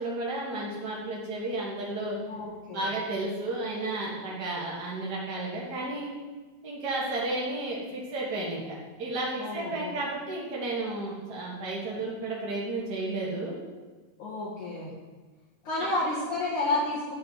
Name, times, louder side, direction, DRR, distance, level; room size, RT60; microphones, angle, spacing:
voice 1, 0.0-2.2 2.7-6.1 6.6-13.6, right 2 dB, 65° right, -4 dB, 1.0 m, -32 dB
voice 2, 2.3-2.9 9.4-9.9 11.9-12.0 14.2-14.9 15.6-17.1, left 2 dB, 55° left, -9 dB, 3.2 m, -31 dB
12.0 x 4.3 x 8.0 m, 1.3 s
omnidirectional pair, 4.5 m